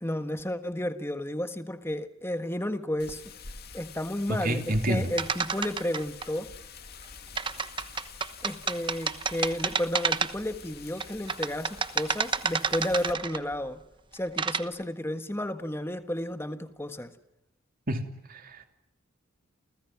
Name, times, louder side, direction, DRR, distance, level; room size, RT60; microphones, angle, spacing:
voice 1, 0.0-3.2 3.7-6.5 8.4-13.8 14.1-17.1, left 1 dB, 10° left, 9 dB, 1.5 m, -32 dB
Wind, 3.0-13.1, left 5 dB, 50° left, 2.7 m, -47 dB
voice 2, 4.3-5.1 17.9-18.7, right 1 dB, 45° right, 6 dB, 2.8 m, -29 dB
sound 1, 5.2-6.3 7.4-10.6 11.0-13.5 14.1-14.6, right 5 dB, 25° right, 1.1 m, -30 dB
29.5 x 29.5 x 6.0 m, 0.85 s
head